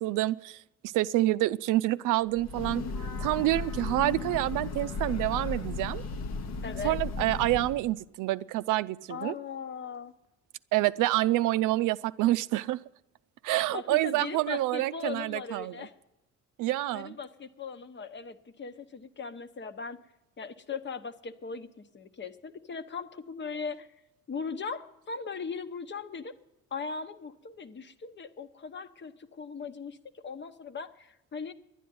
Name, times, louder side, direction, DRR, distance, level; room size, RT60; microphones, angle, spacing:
voice 1, 0.0-2.8 3.2-6.0 6.8-9.3 10.7-12.8 13.4-15.7 16.6-17.2, right 16 dB, 90° right, 0.5 m, -27 dB
Breathing / Train, 2.3-7.9, left 3 dB, 60° left, 1.0 m, -35 dB
voice 2, 6.6-7.0 9.1-10.1 13.7-15.9 16.9-20.0 20.4-23.9 24.3-26.3 26.7-31.5, left 5 dB, 40° left, 1.0 m, -39 dB
11.0 x 10.0 x 9.4 m
cardioid pair, 90°, 30 cm